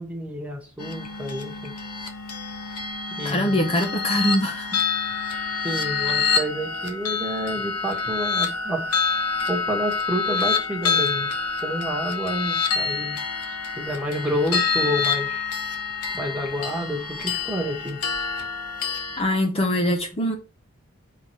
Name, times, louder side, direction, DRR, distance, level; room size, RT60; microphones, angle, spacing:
voice 1, 0.0-1.7 3.2-3.6 5.6-8.8 9.5-11.3 11.6-13.2 13.5-15.4 16.1-18.0, equal, 5° right, 1.4 m, -29 dB
sound 1, 0.8-19.2, left 5 dB, 85° left, 1.1 m, -27 dB
voice 2, 3.2-4.8 19.2-20.3, equal, 25° left, 0.7 m, -23 dB
4.7 x 4.0 x 5.7 m
head